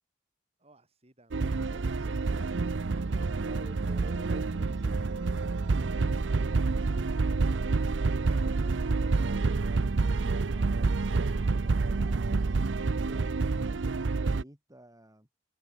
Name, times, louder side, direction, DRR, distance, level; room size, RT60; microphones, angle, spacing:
voice 1, 0.6-4.4, right 1 dB, 35° right, 6.7 m, -56 dB
sound 1, 1.3-14.4, right 3 dB, 85° right, 0.6 m, -28 dB
voice 2, 3.4-7.8 10.5-13.3 13.7-15.3, equal, 20° right, 7.1 m, -53 dB
head